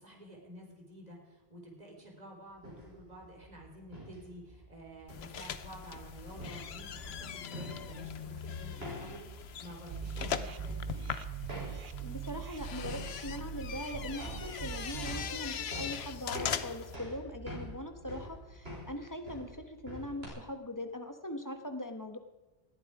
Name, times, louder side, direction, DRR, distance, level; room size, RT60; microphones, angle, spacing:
voice 1, 0.0-11.0, right 1 dB, 40° right, -1 dB, 4.2 m, -50 dB
sound 1, 2.5-20.3, equal, 75° right, 5.6 m, -47 dB
sound 2, 5.1-17.0, left 8 dB, 80° left, 1.0 m, -41 dB
sound 3, 9.9-15.3, right 7 dB, 60° right, 0.9 m, -41 dB
voice 2, 12.0-22.2, left 1 dB, 20° left, 5 dB, 1.3 m, -41 dB
20.0 x 14.0 x 4.9 m, 1.1 s
omnidirectional pair, 1.0 m